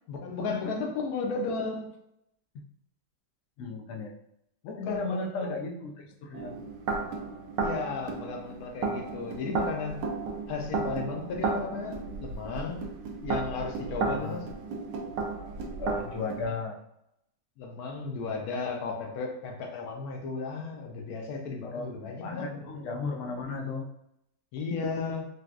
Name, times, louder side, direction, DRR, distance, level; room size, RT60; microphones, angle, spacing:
voice 1, 0.1-1.9 4.6-5.6 7.6-10.0 10.5-12.8 13.2-14.5 17.6-22.5 24.5-25.3, left 4 dB, 65° left, 2 dB, 1.0 m, -34 dB
voice 2, 3.6-4.1 4.8-6.6 13.9-14.5 15.8-16.8 21.6-23.9, left 3 dB, 90° left, 2 dB, 0.7 m, -35 dB
sound 1, 6.3-16.5, right 4 dB, 85° right, 1.2 m, -34 dB
4.0 x 2.3 x 2.3 m, 0.78 s
omnidirectional pair, 1.9 m